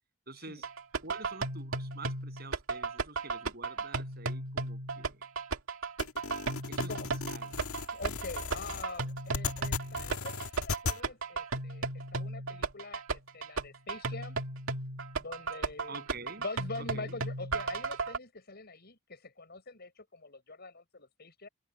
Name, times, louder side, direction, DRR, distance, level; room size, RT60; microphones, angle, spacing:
voice 1, 0.3-0.7 1.0-5.2 6.7-6.9 7.2-7.5 15.9-16.4 16.8-17.1, right 3 dB, 45° right, 7.5 m, -47 dB
sound 1, 0.6-18.2, right 3 dB, 70° right, 2.0 m, -35 dB
sound 2, 6.0-11.0, left 4 dB, 85° left, 1.7 m, -37 dB
voice 2, 7.9-14.4 15.2-16.1 16.4-21.5, left 3 dB, 50° left, 6.6 m, -44 dB
head